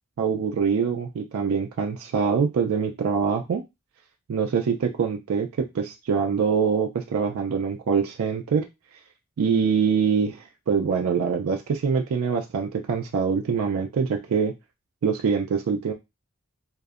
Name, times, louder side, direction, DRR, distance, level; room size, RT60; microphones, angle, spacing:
voice 1, 0.2-3.6 4.3-5.5 5.7-8.6 9.4-14.5 15.0-15.9, right 6 dB, 90° right, 4 dB, 0.4 m, -24 dB
2.5 x 2.1 x 2.3 m, 0.23 s
head